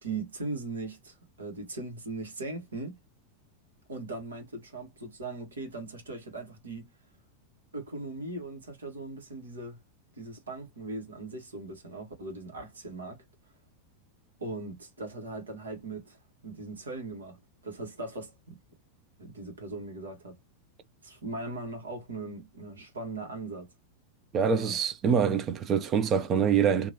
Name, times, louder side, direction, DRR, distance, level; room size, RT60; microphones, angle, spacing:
voice 1, 0.0-2.9 3.9-6.9 7.7-9.8 10.2-13.2 14.4-18.6 19.2-20.3 21.0-23.7 24.4-24.8, right 2 dB, 70° right, 1.3 m, -39 dB
voice 2, 24.3-26.9, right 7 dB, 30° right, 0.5 m, -25 dB
2.9 x 2.6 x 2.6 m
figure-of-eight pair, 90°, 0 cm